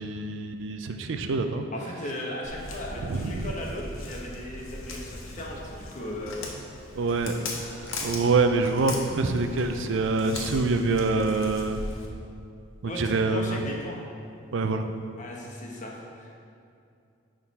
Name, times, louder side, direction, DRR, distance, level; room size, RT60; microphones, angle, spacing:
voice 1, 0.0-1.7 3.0-3.5 6.9-7.3 7.7-11.8 12.8-13.6 14.5-14.9, right 3 dB, 65° right, 7 dB, 0.4 m, -26 dB
voice 2, 1.7-6.4 12.8-14.0 15.2-16.4, left 1 dB, 35° left, -2 dB, 1.0 m, -37 dB
Walk footsteps, 2.4-12.1, left 2 dB, 85° left, 1.0 m, -38 dB
10.5 x 3.8 x 4.1 m, 2.5 s
head